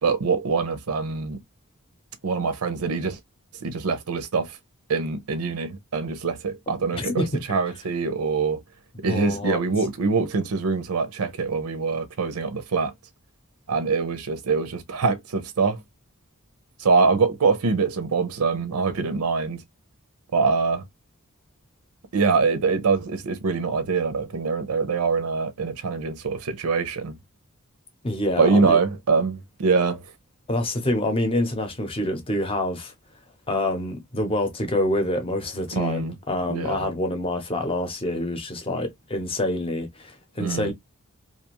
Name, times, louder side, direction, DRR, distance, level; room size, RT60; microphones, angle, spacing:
voice 1, 0.0-1.4 2.2-3.2 3.5-4.6 4.9-8.6 9.0-12.9 13.7-15.8 16.8-19.6 20.3-20.9 22.1-27.2 28.4-30.1 35.7-36.2 36.5-36.9 40.4-40.7, right 4 dB, 90° right, 0.6 m, -24 dB
voice 2, 6.9-7.3 9.1-9.6 28.0-28.8 30.5-32.9 33.5-40.7, left 1 dB, 25° left, 0.7 m, -26 dB
2.5 x 2.3 x 2.9 m
head